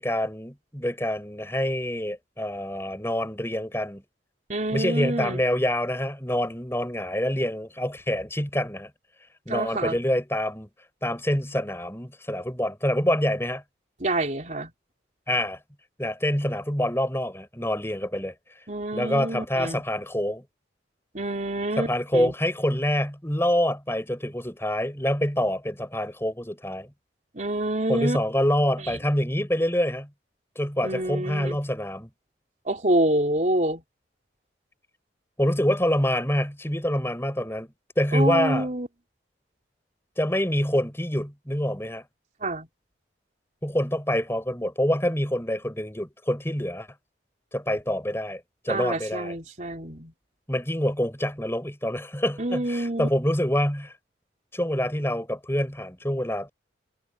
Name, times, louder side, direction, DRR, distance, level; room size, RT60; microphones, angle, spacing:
voice 1, 0.0-4.0 4.7-8.9 9.5-10.7 11.0-13.6 15.3-15.6 16.0-18.3 18.9-20.4 21.8-26.9 27.9-30.1 30.5-32.1 35.4-37.7 38.0-38.7 40.2-42.0 43.6-46.9 47.5-49.3 50.5-53.9 54.5-56.5, left 1 dB, 15° left, 6.5 m, -26 dB
voice 2, 4.5-5.4 9.5-10.0 14.0-14.7 18.7-19.8 21.1-22.3 27.3-28.2 28.8-29.0 30.8-31.6 32.6-33.8 38.1-38.9 42.4-42.7 48.7-50.1 52.4-53.1, right 1 dB, 40° right, 3.9 m, -27 dB
head